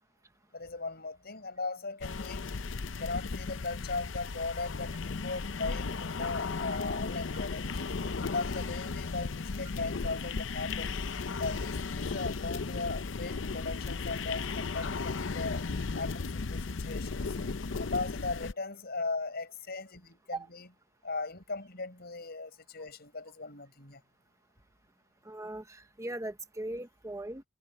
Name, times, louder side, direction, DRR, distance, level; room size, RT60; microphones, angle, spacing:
voice 1, 0.5-2.5 2.8-7.8 8.2-11.0 11.4-15.7 15.9-17.4 17.8-20.7 21.0-24.0, left 3 dB, 55° left, 6.7 m, -38 dB
sound 1, 2.0-18.5, left 4 dB, 75° left, 0.7 m, -35 dB
voice 2, 25.2-27.4, right 2 dB, 15° right, 0.7 m, -39 dB
head